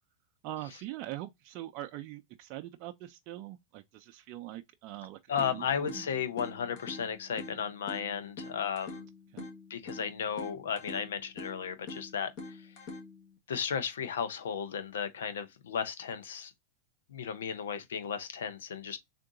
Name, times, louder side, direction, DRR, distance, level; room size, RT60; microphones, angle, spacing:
voice 1, 0.4-5.2 5.4-6.0 9.3-9.5, right 14 dB, 50° right, 0.4 m, -42 dB
voice 2, 5.3-9.1 9.7-12.6 13.5-16.5 17.1-19.0, left 7 dB, 85° left, 0.7 m, -34 dB
sound 1, 5.4-13.4, left 3 dB, 50° left, 1.4 m, -46 dB
3.7 x 2.5 x 3.7 m
hypercardioid pair, 125°, 0 cm